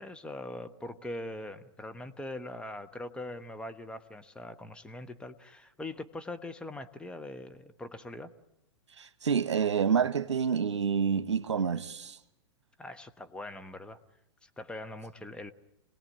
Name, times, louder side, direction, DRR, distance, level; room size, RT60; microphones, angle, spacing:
voice 1, 0.0-8.3 12.8-14.0 14.4-15.5, left 1 dB, 5° left, 1.1 m, -42 dB
voice 2, 9.0-12.2, right 7 dB, 75° right, 1.3 m, -28 dB
26.5 x 18.5 x 10.0 m
figure-of-eight pair, 110°, 15 cm